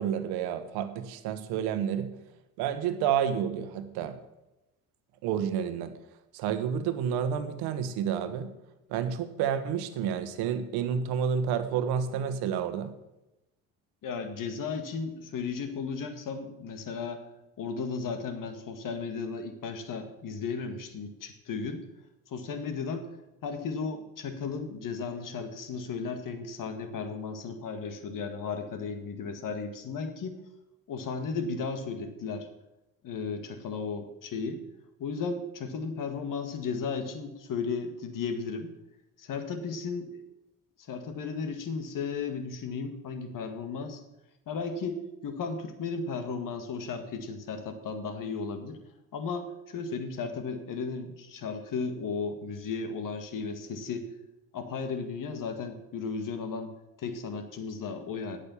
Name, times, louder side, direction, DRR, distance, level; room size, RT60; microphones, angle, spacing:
voice 1, 0.0-2.1 2.6-4.2 5.2-6.0 6.3-8.5 8.9-12.9, right 8 dB, 80° right, 10 dB, 1.2 m, -30 dB
voice 2, 14.0-17.2 17.6-21.9 22.3-23.1 23.4-30.4 30.9-32.5 33.0-34.6 35.0-38.7 39.2-40.2 40.8-44.0 44.5-48.8 49.1-54.1 54.5-58.4, left 5 dB, 55° left, 8 dB, 1.8 m, -35 dB
9.1 x 8.4 x 7.1 m, 0.93 s
supercardioid pair, 80°, 37 cm